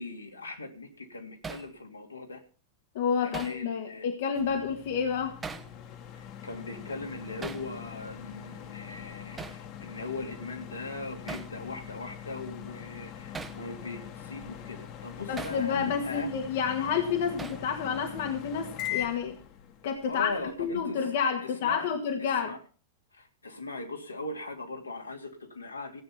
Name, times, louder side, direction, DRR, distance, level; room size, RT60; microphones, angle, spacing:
voice 1, 0.0-2.4 3.2-4.1 6.2-16.3 20.1-21.0 21.4-21.9 22.2-22.6 23.1-26.0, left 3 dB, 80° left, 2 dB, 3.0 m, -40 dB
Hammer, 1.4-1.7 3.3-3.6 5.4-5.7 7.4-7.7 9.4-9.6 11.3-11.5 13.3-13.6 15.4-15.6 17.4-17.7, right 5 dB, 15° right, 1.2 m, -39 dB
voice 2, 3.0-5.4 15.3-19.4 19.8-22.5, left 6 dB, 55° left, 5 dB, 1.8 m, -29 dB
sound 1, 4.3-20.8, left 11 dB, 40° left, 1.8 m, -43 dB
17.0 x 8.7 x 5.9 m, 0.36 s
figure-of-eight pair, 90°, 0 cm